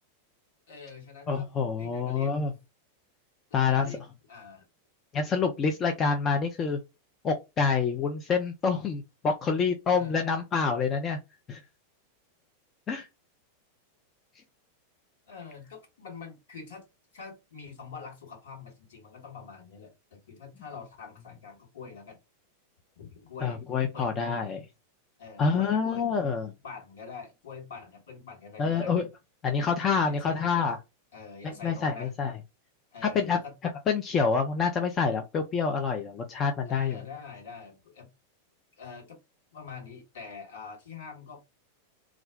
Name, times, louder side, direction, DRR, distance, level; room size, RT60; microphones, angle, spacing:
voice 1, 0.7-1.5 1.8-2.4 3.5-4.0 4.3-4.6 9.9-10.2 15.3-16.9 17.1-22.2 23.0-23.6 23.9-24.1 25.2-26.1 26.6-28.9 30.1-30.7 31.1-32.1 32.9-33.5 36.7-38.1 38.8-39.2 39.5-41.4, left 5 dB, 60° left, 1.3 m, -45 dB
voice 2, 1.3-2.5 3.5-4.0 5.1-6.8 7.2-11.2 11.5-11.6 12.9-13.1 23.4-24.6 25.4-26.5 28.6-29.0 29.4-30.8 31.4-32.4 33.0-33.4 33.9-37.0, left 5 dB, 25° left, 0.4 m, -27 dB
2.4 x 2.2 x 3.5 m
figure-of-eight pair, 90°, 0 cm